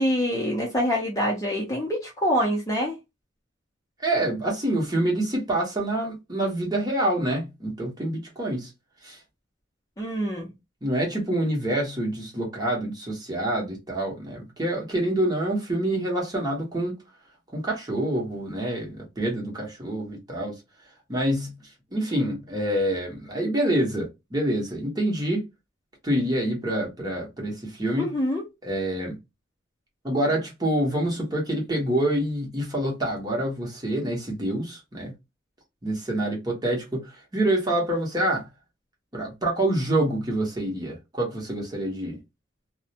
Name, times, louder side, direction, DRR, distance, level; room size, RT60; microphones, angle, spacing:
voice 1, 0.0-3.0 10.0-10.5 28.0-28.4, equal, 15° left, 0.6 m, -25 dB
voice 2, 4.0-8.7 9.0-9.2 10.8-16.9 17.5-20.5 21.1-21.5 21.9-25.4 26.0-28.1 28.6-29.2 30.0-35.1 35.8-38.5 39.1-42.2, right 1 dB, 20° right, 0.9 m, -26 dB
2.4 x 2.1 x 2.7 m
head